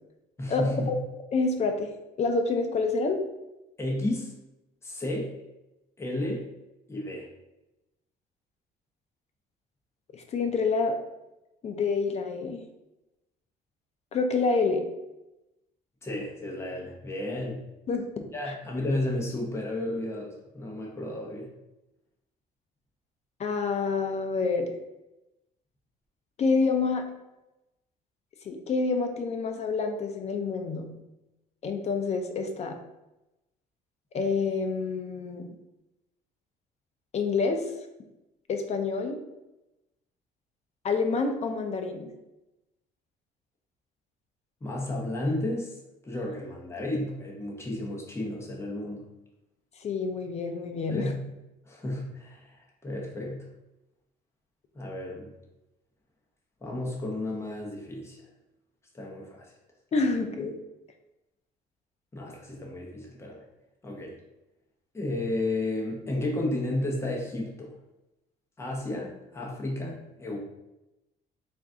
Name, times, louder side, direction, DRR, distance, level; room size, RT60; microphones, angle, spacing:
voice 1, 0.4-0.9 3.8-4.3 4.8-5.3 6.0-6.4 6.9-7.3 16.0-17.6 18.3-21.5 44.6-45.8 46.0-49.0 50.9-51.2 51.6-53.4 54.7-55.3 56.6-58.2 58.9-59.5 62.1-63.4 63.8-64.2 64.9-67.7 68.6-70.4, left 1 dB, 15° left, -3 dB, 0.9 m, -32 dB
voice 2, 1.3-1.9 2.2-3.2 10.1-11.0 11.6-12.6 14.1-14.9 17.9-18.1 23.4-24.7 26.4-27.0 28.4-30.9 31.6-32.8 34.1-35.5 37.1-37.6 38.5-39.2 40.8-42.1 49.8-51.1 59.9-60.6, left 4 dB, 40° left, 5 dB, 0.6 m, -27 dB
3.8 x 2.5 x 3.6 m, 0.95 s
cardioid pair, 110°, 17 cm